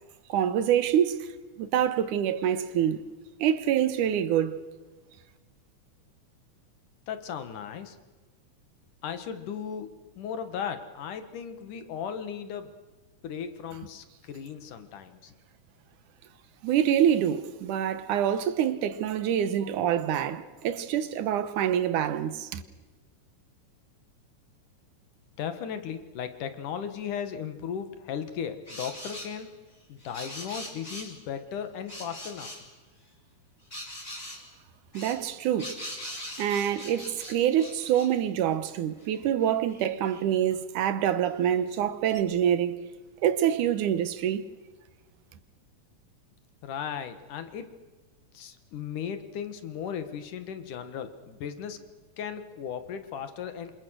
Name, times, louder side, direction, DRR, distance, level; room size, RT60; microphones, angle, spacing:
voice 1, 0.3-1.3 1.6-3.1 3.4-4.7 16.6-22.6 34.9-35.8 36.4-42.8 43.2-44.5, right 10 dB, 80° right, 2.6 m, -26 dB
voice 2, 7.1-8.0 9.0-9.9 10.2-12.7 13.2-15.3 25.4-29.5 29.9-32.5 46.6-47.7 48.3-51.8 52.2-53.7, left 8 dB, 80° left, 3.2 m, -36 dB
sound 1, 28.7-29.3 30.0-31.2 31.9-32.6 33.7-34.4 34.9-38.1 38.7-38.8 39.0-40.2 41.4-41.5 42.1-42.2, left 1 dB, 10° left, 5.6 m, -41 dB
27.5 x 27.0 x 6.5 m
omnidirectional pair, 3.6 m